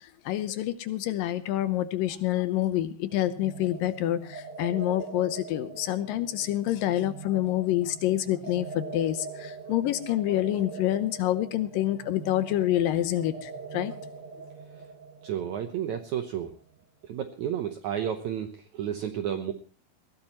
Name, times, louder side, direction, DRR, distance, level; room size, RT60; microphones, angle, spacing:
voice 1, 0.0-13.9, left 13 dB, 75° left, 12 dB, 2.4 m, -27 dB
sound 1, 3.1-16.7, right 4 dB, 50° right, 2.8 m, -43 dB
voice 2, 15.2-16.5 17.0-19.5, right 9 dB, 70° right, 6 dB, 1.9 m, -31 dB
20.5 x 16.0 x 3.0 m, 0.37 s
omnidirectional pair, 4.3 m